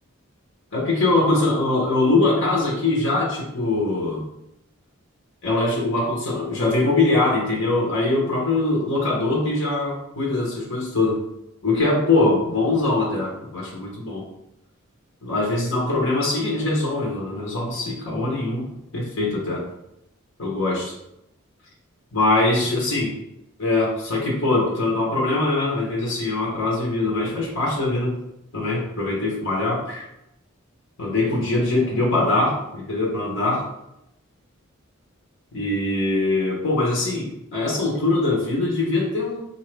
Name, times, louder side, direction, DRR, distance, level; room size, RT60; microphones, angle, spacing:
voice 1, 0.7-4.2 5.4-11.2 11.6-14.2 15.2-18.7 18.9-19.6 20.4-20.9 22.1-23.1 23.6-28.1 28.5-30.1 31.0-33.6 35.5-39.4, left 2 dB, 60° left, -3 dB, 1.1 m, -22 dB
3.8 x 2.8 x 3.3 m, 0.84 s
head